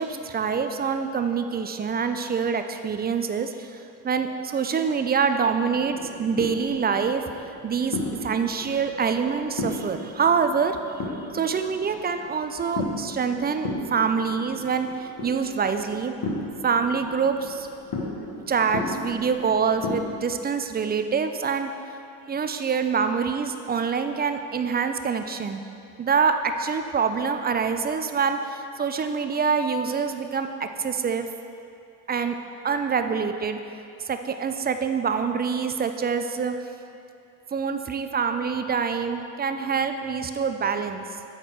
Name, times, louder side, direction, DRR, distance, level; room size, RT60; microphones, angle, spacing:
voice 1, 0.0-7.2 7.6-10.8 11.3-16.1 16.6-17.7 18.5-21.7 22.3-25.6 26.0-31.3 32.1-32.4 32.6-33.6 34.0-36.5 37.5-41.0, right 6 dB, 20° right, 7 dB, 0.4 m, -25 dB
sound 1, 5.7-20.2, left 2 dB, 40° left, 1.4 m, -35 dB
7.8 x 4.3 x 4.6 m, 2.6 s
hypercardioid pair, 55°, 49 cm